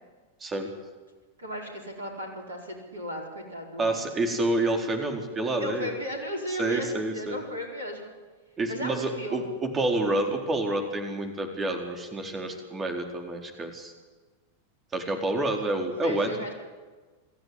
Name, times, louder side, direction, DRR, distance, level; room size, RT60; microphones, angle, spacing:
voice 1, 1.4-4.1 5.6-8.1 8.7-9.4 16.0-16.5, equal, 70° right, 1 dB, 4.5 m, -36 dB
voice 2, 3.8-5.9 6.6-7.4 8.6-13.9 14.9-16.3, right 2 dB, 20° right, 3 dB, 4.3 m, -28 dB
27.0 x 14.0 x 10.0 m, 1.3 s
figure-of-eight pair, 90°, 0 cm